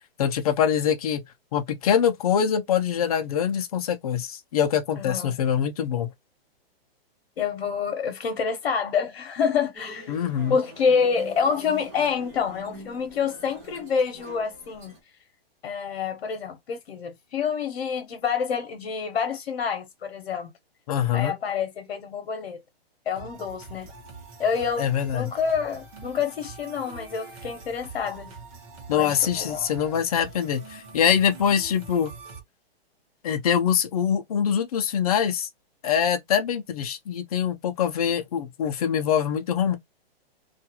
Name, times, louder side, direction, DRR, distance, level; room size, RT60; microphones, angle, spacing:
voice 1, 0.2-1.2 1.5-6.1 10.1-10.6 20.9-21.3 24.8-25.3 28.9-32.1 33.2-35.5 35.8-39.8, left 8 dB, 40° left, 0.5 m, -24 dB
voice 2, 4.9-5.3 7.4-10.1 10.5-14.9 15.6-20.5 21.1-22.6 23.1-23.9 24.4-28.3 28.9-29.7, left 6 dB, 65° left, 0.9 m, -27 dB
sound 1, 9.7-15.0, equal, 15° right, 0.4 m, -44 dB
sound 2, 23.1-32.4, right 4 dB, 35° right, 0.9 m, -44 dB
2.5 x 2.4 x 2.8 m
hypercardioid pair, 165°, 31 cm